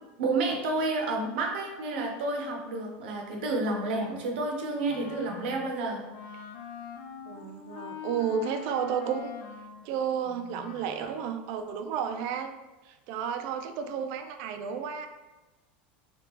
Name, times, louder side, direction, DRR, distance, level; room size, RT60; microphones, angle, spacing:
voice 1, 0.2-6.0, right 2 dB, 85° right, 1 dB, 0.7 m, -30 dB
Wind instrument woodwind instrument, 4.9-11.4, left 7 dB, 65° left, 0.4 m, -44 dB
voice 2, 7.3-9.3 9.8-12.5 12.8-15.1, right 7 dB, 60° right, 7 dB, 0.4 m, -32 dB
3.5 x 2.3 x 2.9 m, 1.1 s
supercardioid pair, 135°, 5 cm